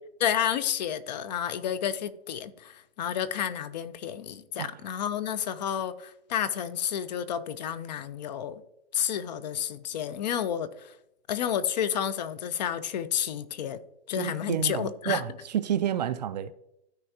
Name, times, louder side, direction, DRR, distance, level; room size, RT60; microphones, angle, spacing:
voice 1, 0.2-8.6 8.9-10.9 11.3-13.8 14.1-15.2, left 9 dB, 40° left, 0.5 m, -30 dB
voice 2, 14.2-16.5, right 10 dB, 40° right, 0.4 m, -30 dB
13.5 x 4.7 x 2.7 m
hypercardioid pair, 145°, 33 cm